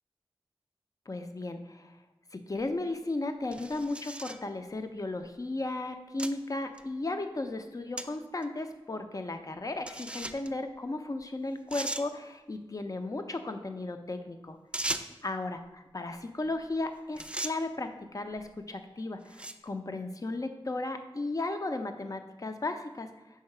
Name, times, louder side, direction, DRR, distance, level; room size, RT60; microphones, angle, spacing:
voice 1, 1.1-1.9 2.3-14.6 15.2-23.1, left 2 dB, 40° left, 7 dB, 0.5 m, -35 dB
sound 1, 2.6-2.7 3.5-4.4 5.2-5.3 6.2-6.3 6.8-6.9 8.0-8.1 8.4-8.5 9.9-10.5 11.2-11.3 11.7-12.1 14.7-15.3 16.6-16.8 17.2-17.6 18.4-18.6 19.2-19.7, right 1 dB, 10° right, 0.3 m, -37 dB
4.8 x 3.9 x 5.4 m, 1.1 s
wide cardioid pair, 75°, 9 cm